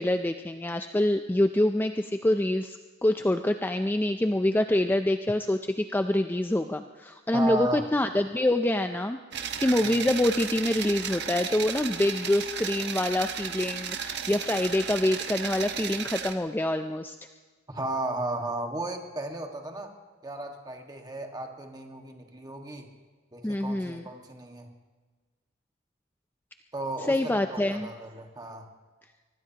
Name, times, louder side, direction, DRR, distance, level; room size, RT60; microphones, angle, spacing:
voice 1, 0.0-17.2 23.4-24.0 27.1-27.9, left 1 dB, 10° left, 7 dB, 0.4 m, -26 dB
voice 2, 7.3-7.9 9.8-10.0 17.7-19.9 20.2-22.9 23.3-24.7 26.7-28.7, right 2 dB, 20° right, 3 dB, 1.6 m, -34 dB
sound 1, 9.3-16.3, right 7 dB, 60° right, 1.1 m, -34 dB
24.5 x 20.5 x 2.9 m, 1.4 s
head